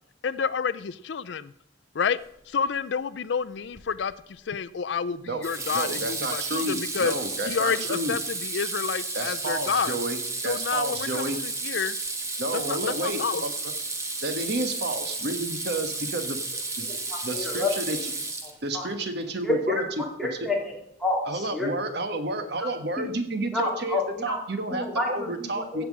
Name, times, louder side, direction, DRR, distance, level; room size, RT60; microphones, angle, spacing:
voice 1, 0.2-1.5 1.9-2.2 2.5-7.1 7.5-10.0 10.4-12.0 12.5-13.4, left 6 dB, 65° left, 15 dB, 0.4 m, -29 dB
Water tap faucet / Sink (filling or washing), 3.8-4.1 5.4-18.8, right 3 dB, 15° right, 1.2 m, -32 dB
voice 2, 5.7-8.1 9.1-11.4 12.4-13.7 14.2-16.4 16.8-16.9 17.2-18.0 18.6-19.8 20.4-20.5 21.2-25.8, right 1 dB, 60° right, 7 dB, 1.2 m, -31 dB
voice 3, 16.8-18.0 18.7-18.9 19.4-20.7 21.0-21.7 22.6-22.7 23.0-23.1 23.5-24.4 24.7-25.9, left 2 dB, ahead, -2 dB, 3.2 m, -29 dB
16.0 x 5.9 x 7.4 m, 0.74 s
head